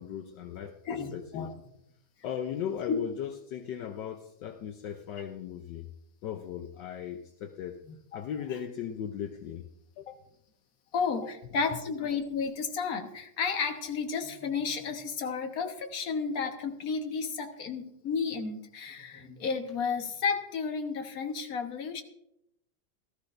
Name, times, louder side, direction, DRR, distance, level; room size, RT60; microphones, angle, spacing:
voice 1, 0.0-0.7 1.1-1.5 2.2-5.8 6.2-7.8 8.1-9.7 10.0-10.2 11.2-11.3, left 9 dB, 75° left, 5 dB, 1.3 m, -37 dB
voice 2, 0.8-1.5 2.9-3.0 7.9-8.2 8.5-8.6 10.9-22.0, left 5 dB, 55° left, 4 dB, 1.6 m, -32 dB
17.5 x 13.5 x 2.6 m, 0.80 s
omnidirectional pair, 2.0 m